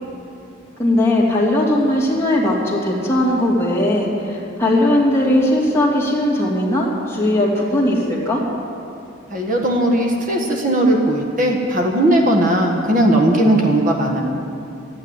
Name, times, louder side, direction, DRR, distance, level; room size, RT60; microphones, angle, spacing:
voice 1, 0.8-8.4, left 1 dB, 15° left, -4 dB, 2.6 m, -18 dB
voice 2, 9.3-14.2, right 1 dB, 45° right, 1 dB, 1.6 m, -17 dB
13.5 x 9.3 x 9.8 m, 2.6 s
head